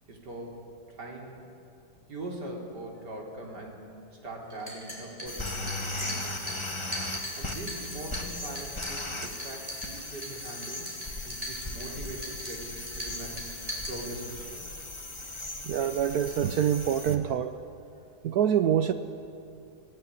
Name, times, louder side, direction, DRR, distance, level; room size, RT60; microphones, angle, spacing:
voice 1, 0.1-0.6 0.9-1.5 2.1-6.6 7.4-10.9 11.2-13.4 13.9-14.7, right 2 dB, 85° right, 0 dB, 4.2 m, -41 dB
sound 1, 4.5-14.5, equal, 20° right, 5.1 m, -41 dB
sound 2, 5.2-17.2, left 2 dB, 15° left, 1.7 m, -38 dB
voice 2, 15.6-17.5 18.2-18.9, right 9 dB, 70° right, 10 dB, 1.2 m, -25 dB
25.0 x 17.0 x 9.5 m, 2.6 s
omnidirectional pair, 1.8 m